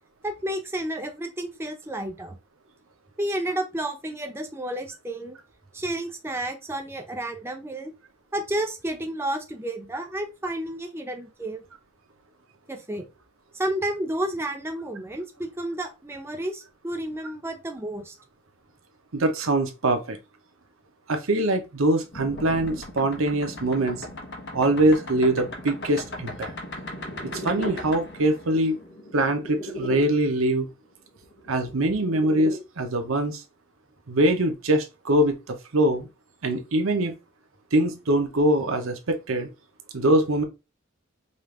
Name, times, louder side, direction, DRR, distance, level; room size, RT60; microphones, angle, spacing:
voice 1, 0.2-2.4 3.2-5.4 5.7-7.9 8.3-11.6 12.7-13.1 13.5-18.1, right 1 dB, 10° right, 0.5 m, -31 dB
voice 2, 19.1-20.2 21.1-24.0 24.5-26.5 27.4-28.8 29.1-30.7 31.5-33.4 34.1-36.1 36.4-37.1 37.7-39.5 39.9-40.4, right 1 dB, 75° right, 0.9 m, -23 dB
sound 1, 22.1-30.0 31.3-32.6, equal, 55° left, 1.1 m, -37 dB
5.3 x 2.5 x 3.2 m
head